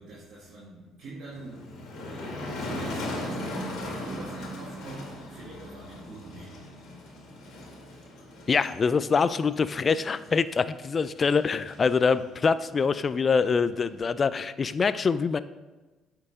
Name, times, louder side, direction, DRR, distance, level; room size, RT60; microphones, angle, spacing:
voice 1, 0.0-6.7, right 2 dB, 60° right, -7 dB, 1.8 m, -44 dB
Motor vehicle (road), 1.3-14.0, left 1 dB, 70° left, 1.8 m, -39 dB
voice 2, 8.5-15.4, left 5 dB, 40° left, 15 dB, 0.3 m, -24 dB
8.5 x 4.6 x 3.6 m, 1.2 s
supercardioid pair, 75°, 0 cm